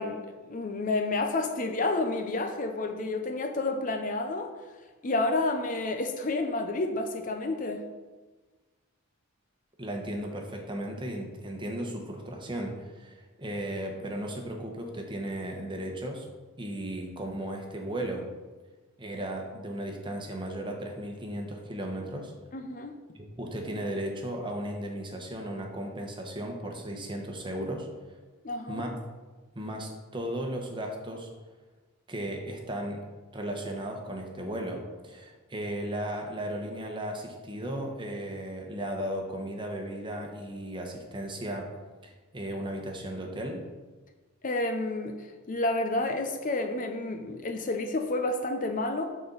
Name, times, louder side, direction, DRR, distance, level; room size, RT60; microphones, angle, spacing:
voice 1, 0.0-4.5 5.0-7.8 22.5-22.9 28.4-28.8 44.4-49.0, left 2 dB, 40° left, 5 dB, 0.6 m, -30 dB
voice 2, 9.8-16.3 16.6-18.2 19.0-22.3 23.1-27.9 28.7-29.0 29.5-31.3 32.1-33.0 33.3-41.7 42.0-43.6, right 1 dB, 25° right, 2 dB, 1.1 m, -35 dB
12.5 x 4.3 x 4.0 m, 1.3 s
head